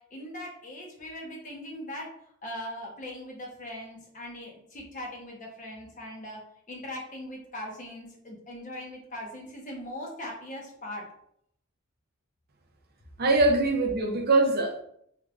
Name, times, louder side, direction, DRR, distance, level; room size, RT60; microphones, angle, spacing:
voice 1, 0.1-2.1 2.4-6.4 6.7-11.0, left 1 dB, 40° left, 0.9 m, -40 dB
voice 2, 13.2-14.8, right 2 dB, 50° right, 0.5 m, -23 dB
3.3 x 3.2 x 2.4 m
head